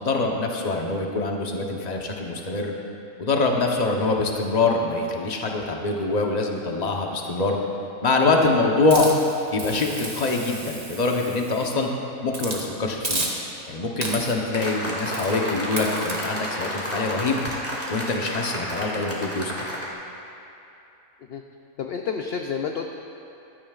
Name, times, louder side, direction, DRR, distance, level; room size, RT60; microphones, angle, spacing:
voice 1, 0.0-2.7 3.2-7.6 8.0-9.1 9.5-11.9 12.2-13.3 13.7-17.4 17.9-19.7, left 3 dB, 35° left, 1 dB, 0.9 m, -24 dB
Hiss, 8.9-11.8 12.3-12.6 13.0-13.7 14.0-14.5 15.1-15.4 15.8-16.2, right 2 dB, 30° right, 1.2 m, -32 dB
sound 1, 14.5-19.9, equal, 10° left, 1.7 m, -31 dB
voice 2, 21.8-22.9, left 6 dB, 65° left, 4 dB, 0.6 m, -30 dB
15.0 x 12.5 x 2.4 m, 2.8 s
omnidirectional pair, 1.5 m